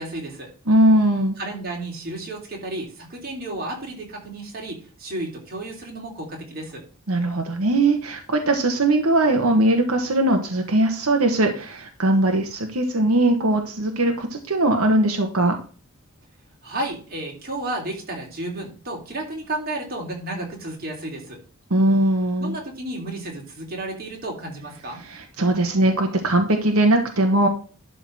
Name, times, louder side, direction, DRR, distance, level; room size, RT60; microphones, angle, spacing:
voice 1, 0.0-0.5 1.4-6.8 16.6-21.4 22.4-25.0, right 2 dB, 45° right, 0 dB, 3.3 m, -32 dB
voice 2, 0.7-1.3 7.1-15.6 21.7-22.6 25.1-27.5, right 1 dB, 85° right, 3 dB, 1.3 m, -20 dB
12.0 x 4.0 x 6.1 m, 0.38 s
head